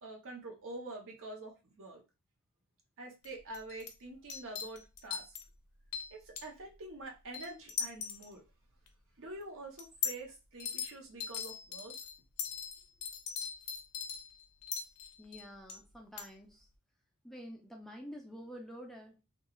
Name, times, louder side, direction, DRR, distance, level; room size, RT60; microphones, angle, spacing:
voice 1, 0.0-2.0 3.0-5.3 6.1-8.4 9.2-12.0, right 2 dB, 60° right, 1 dB, 0.8 m, -46 dB
sound 1, 3.2-3.3 3.5-3.9 4.3-5.5 5.9-6.4 7.3-8.3 8.9-9.0 9.8-10.2 10.6-10.9 11.2-15.8 16.2-16.3, left 7 dB, 70° left, 0.5 m, -39 dB
voice 2, 15.2-16.7 17.2-19.2, equal, ahead, 1 dB, 0.3 m, -48 dB
2.3 x 2.3 x 2.9 m, 0.27 s
head